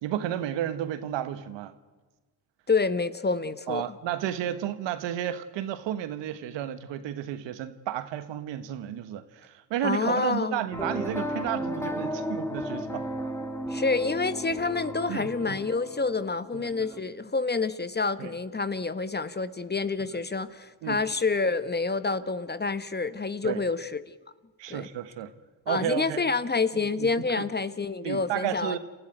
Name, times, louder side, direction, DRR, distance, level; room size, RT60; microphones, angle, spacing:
voice 1, 0.0-1.7 3.7-13.1 15.1-15.6 16.5-16.9 18.2-18.3 20.8-21.0 23.4-23.6 24.6-25.3 25.7-26.2 27.0-27.5 28.0-28.8, right 11 dB, 70° right, 1.5 m, -32 dB
voice 2, 2.7-3.9 9.8-10.6 13.7-24.0 24.7-24.9 25.7-28.8, left 4 dB, 20° left, 1.1 m, -28 dB
sound 1, 10.7-17.0, equal, 5° left, 2.6 m, -34 dB
29.0 x 13.5 x 9.1 m
hypercardioid pair, 55°, 45 cm